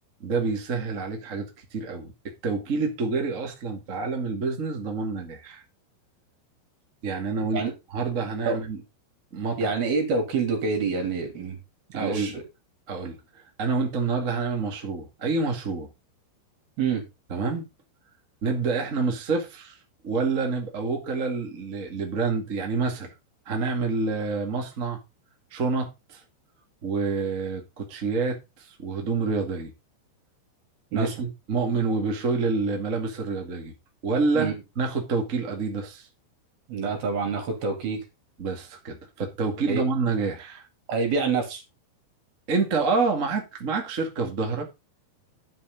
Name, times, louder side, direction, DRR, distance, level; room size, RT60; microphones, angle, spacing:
voice 1, 0.2-5.6 7.0-7.6 7.9-8.8 9.3-9.7 11.9-12.4 12.9-13.2 13.6-15.9 17.3-17.6 18.4-19.8 20.0-23.1 23.4-25.0 25.5-26.2 26.8-29.7 30.9-33.7 34.0-36.1 38.4-40.7 42.5-44.7, right 4 dB, 30° right, 1.4 m, -27 dB
voice 2, 9.6-11.6 11.9-12.4 16.8-17.0 30.9-31.1 32.0-32.1 34.3-34.5 36.7-38.0 39.7-39.8 40.9-41.6, right 4 dB, 55° right, 4.7 m, -26 dB
11.5 x 7.6 x 4.0 m
omnidirectional pair, 5.3 m